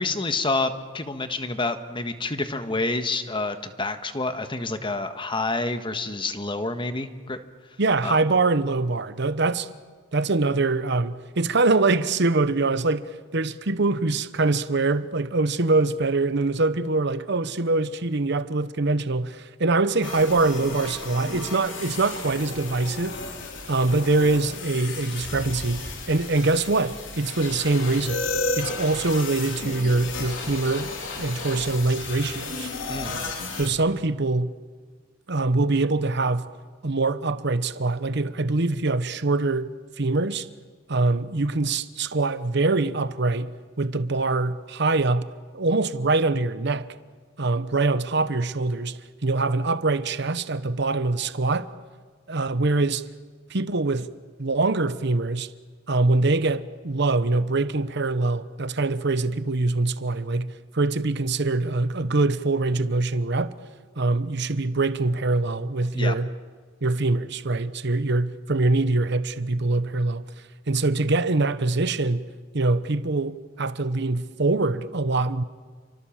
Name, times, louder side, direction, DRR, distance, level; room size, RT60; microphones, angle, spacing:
voice 1, 0.0-7.4 8.0-8.2 32.9-33.1 65.9-66.1, left 3 dB, 25° left, 1.5 m, -28 dB
voice 2, 7.8-9.7 10.1-23.2 23.7-28.3 28.6-30.9 31.2-32.7 33.6-34.5 35.3-36.5 36.8-39.7 40.0-40.5 40.9-43.5 43.8-45.3 45.5-46.9 47.4-51.7 52.3-53.0 53.5-54.1 54.4-55.5 55.9-63.5 64.0-66.3 66.8-70.3 70.7-72.2 72.5-75.4, right 3 dB, 60° right, 1.0 m, -24 dB
sound 1, 20.0-33.7, left 3 dB, 70° left, 4.1 m, -33 dB
30.0 x 24.0 x 7.4 m
head